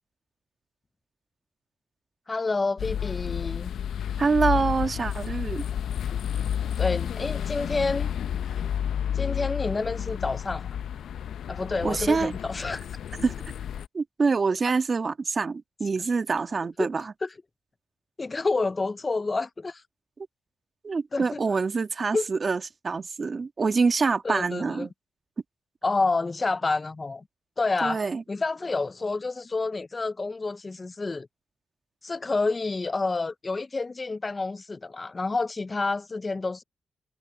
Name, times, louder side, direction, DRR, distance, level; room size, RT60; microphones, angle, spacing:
voice 1, 2.3-3.7 6.8-8.1 9.1-10.7 11.5-12.8 16.8-16.9 17.2-17.3 18.2-19.8 21.1-21.4 22.1-22.3 24.2-24.9 25.8-27.2 27.6-28.0 28.3-31.3 32.0-36.6, left 3 dB, 35° left, 0.6 m, -28 dB
sound 1, 2.8-13.9, left 9 dB, 80° left, 0.7 m, -31 dB
voice 2, 4.2-5.6 11.8-12.3 13.2-13.3 13.9-17.1 20.8-24.9 27.8-28.2, right 4 dB, 45° right, 1.7 m, -26 dB
supercardioid pair, 55°, 0 cm